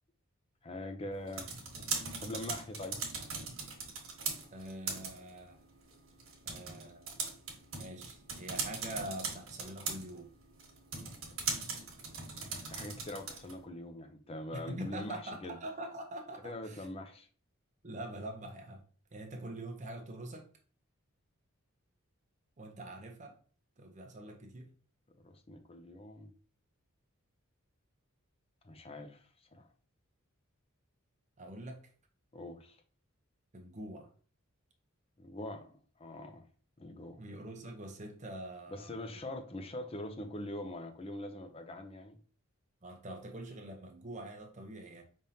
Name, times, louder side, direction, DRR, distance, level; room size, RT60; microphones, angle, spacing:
voice 1, 0.6-1.5 2.2-3.0 12.4-15.6 16.4-17.3 25.2-26.3 28.6-29.2 29.5-29.7 32.3-32.8 35.2-36.4 36.8-37.2 38.7-42.2, left 1 dB, 30° left, 0.6 m, -43 dB
sound 1, 1.1-13.6, right 5 dB, 75° right, 1.3 m, -41 dB
voice 2, 4.5-5.6 6.5-7.1 7.8-10.3 14.5-16.9 17.8-18.8 19.1-20.5 22.6-23.4 23.8-24.7 31.4-31.8 33.5-34.1 37.2-39.1 42.8-45.0, right 1 dB, 35° right, 0.7 m, -44 dB
5.1 x 3.5 x 2.7 m
head